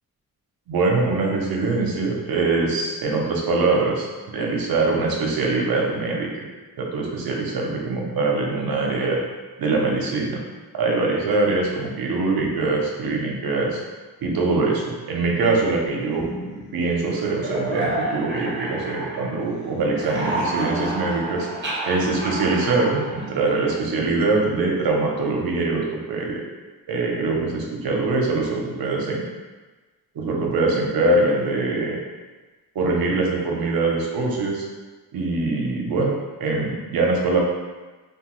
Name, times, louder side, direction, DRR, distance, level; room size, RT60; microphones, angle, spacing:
voice 1, 0.7-4.1 4.3-6.5 6.8-9.2 9.6-10.4 10.7-13.8 14.2-16.2 16.7-21.5 21.9-26.4 26.9-29.2 30.1-32.0 32.7-34.6 35.1-37.4, right 3 dB, 70° right, -1 dB, 0.7 m, -23 dB
sound 1, 16.0-19.5 19.8-23.9, right 1 dB, 30° right, 0.7 m, -30 dB
3.0 x 2.3 x 3.0 m, 1.3 s
wide cardioid pair, 130°, 37 cm